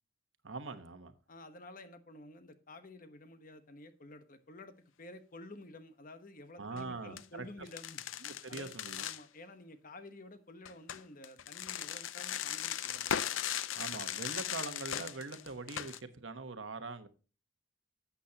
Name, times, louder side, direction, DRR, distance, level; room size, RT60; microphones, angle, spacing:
voice 1, 0.4-1.1 6.6-7.5 8.2-9.0 13.8-17.1, right 3 dB, 75° right, 1.1 m, -43 dB
voice 2, 1.3-8.0 8.5-8.7 9.0-13.1, left 2 dB, 45° left, 1.1 m, -51 dB
sound 1, 6.6-6.8 7.2-7.3 7.7-9.2 10.7-16.0, left 10 dB, 90° left, 0.6 m, -38 dB
12.5 x 8.4 x 2.8 m
head